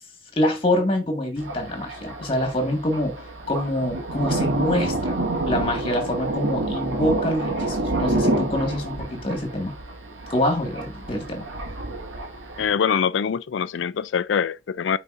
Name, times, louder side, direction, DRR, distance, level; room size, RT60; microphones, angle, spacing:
voice 1, 0.4-3.2 3.5-9.7 10.3-11.5, left 1 dB, 30° left, 1.8 m, -25 dB
Thunder, 1.4-12.7, right 2 dB, 85° right, 2.0 m, -28 dB
voice 2, 12.6-15.0, left 7 dB, 75° left, 0.4 m, -24 dB
9.2 x 4.1 x 2.6 m
head